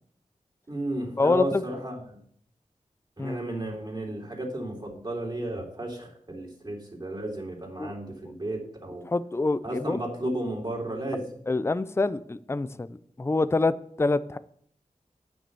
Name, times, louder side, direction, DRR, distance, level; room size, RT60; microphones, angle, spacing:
voice 1, 0.7-2.2 3.2-9.0 9.6-11.4, right 1 dB, 30° right, -2 dB, 3.4 m, -33 dB
voice 2, 1.2-1.6 3.2-3.4 7.8-7.9 9.1-10.0 11.5-14.4, left 3 dB, 20° left, 15 dB, 0.4 m, -26 dB
9.4 x 6.2 x 6.8 m, 0.64 s
wide cardioid pair, 70°, 14 cm